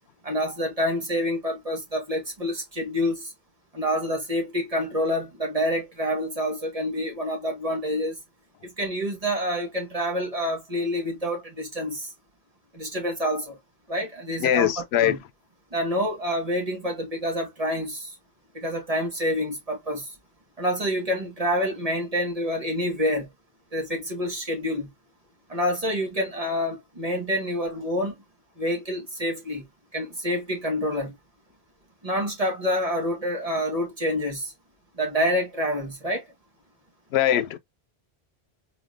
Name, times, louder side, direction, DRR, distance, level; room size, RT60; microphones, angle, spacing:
voice 1, 0.2-3.3 3.7-8.2 8.6-12.1 12.7-13.6 13.9-15.2 15.7-18.1 18.5-20.1 20.6-23.3 23.7-24.9 25.5-28.1 28.6-29.6 29.9-31.1 32.0-34.5 35.0-36.2, equal, 35° right, 1.7 m, -27 dB
voice 2, 14.4-15.2 37.1-37.6, left 11 dB, 85° left, 0.8 m, -21 dB
4.0 x 3.5 x 2.5 m
omnidirectional pair, 1.1 m